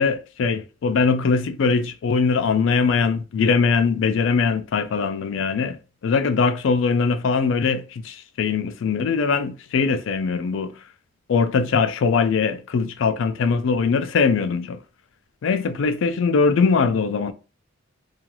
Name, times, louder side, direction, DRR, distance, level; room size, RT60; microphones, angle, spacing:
voice 1, 0.0-5.8 6.0-10.7 11.3-14.8 15.4-17.3, left 5 dB, 65° left, 0.3 m, -21 dB
2.3 x 2.3 x 2.9 m
head